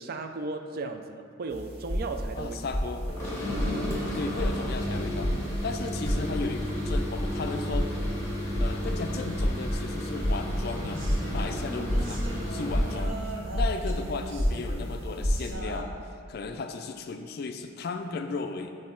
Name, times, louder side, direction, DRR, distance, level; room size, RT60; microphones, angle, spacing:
voice 1, 0.0-2.6, right 3 dB, 45° right, 6 dB, 0.3 m, -35 dB
sound 1, 1.5-15.5, equal, 80° right, 1.5 m, -31 dB
voice 2, 2.4-3.1 4.1-5.3 5.6-7.9 8.6-12.2 12.5-15.9 16.3-18.7, left 4 dB, 45° left, 6 dB, 0.3 m, -35 dB
sound 2, 3.1-13.1, equal, 15° left, 1.0 m, -33 dB
sound 3, 10.7-15.8, right 2 dB, 65° right, 0.7 m, -40 dB
7.4 x 3.2 x 4.4 m, 2.3 s
head